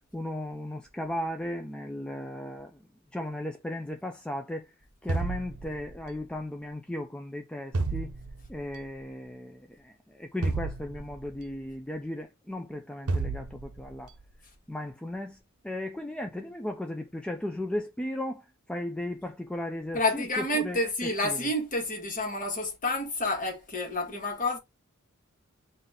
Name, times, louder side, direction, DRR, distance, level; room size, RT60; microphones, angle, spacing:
voice 1, 0.1-2.9 3.1-4.7 5.0-8.1 8.5-14.1 14.7-15.4 15.6-21.5, left 1 dB, 5° left, 0.3 m, -36 dB
sound 1, 5.1-6.2 7.7-8.7 10.4-11.5 13.1-14.0, right 3 dB, 85° right, 0.7 m, -32 dB
voice 2, 19.9-24.6, left 1 dB, 40° left, 1.4 m, -29 dB
3.9 x 2.6 x 3.4 m
head